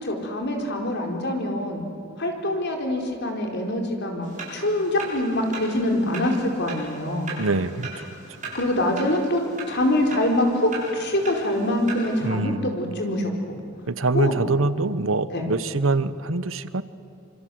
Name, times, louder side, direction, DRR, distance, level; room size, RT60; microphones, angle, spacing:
voice 1, 0.0-1.8 2.2-7.3 8.5-9.4 9.7-13.6 14.1-14.4 15.3-15.4, left 1 dB, 60° left, 2 dB, 4.7 m, -24 dB
sound 1, 4.2-12.3, right 2 dB, 40° right, 7.8 m, -39 dB
voice 2, 7.4-8.0 12.2-12.7 13.9-16.8, right 3 dB, 85° right, 14 dB, 1.1 m, -24 dB
27.0 x 25.5 x 7.9 m, 2.6 s
head